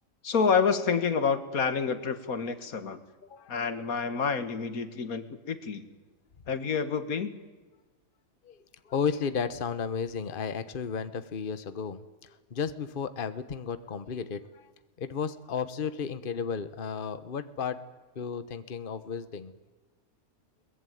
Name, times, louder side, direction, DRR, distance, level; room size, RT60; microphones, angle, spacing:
voice 1, 0.2-3.0 3.5-5.9 6.5-7.3, left 5 dB, 90° left, 11 dB, 2.0 m, -28 dB
voice 2, 3.2-3.5 8.4-8.6 8.8-14.7 15.0-17.8 18.1-19.5, left 6 dB, 40° left, 12 dB, 1.2 m, -33 dB
22.5 x 20.0 x 9.3 m, 1.3 s
omnidirectional pair, 1.5 m